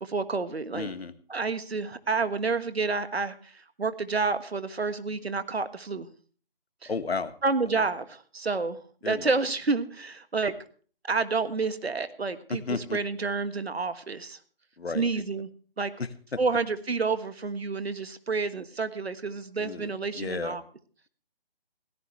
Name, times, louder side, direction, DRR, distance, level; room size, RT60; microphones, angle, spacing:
voice 1, 0.0-0.9 1.3-6.1 6.8-6.9 7.4-8.8 9.0-10.5 11.0-14.4 14.9-15.5 15.8-15.9 16.4-20.6, right 4 dB, 85° right, 12 dB, 1.5 m, -29 dB
voice 2, 0.7-1.1 6.9-7.3 9.0-9.3 12.5-13.0 14.8-15.0 16.0-16.4 19.6-20.6, left 4 dB, 80° left, 12 dB, 1.5 m, -33 dB
17.0 x 15.5 x 3.2 m, 0.42 s
figure-of-eight pair, 160°, 30 cm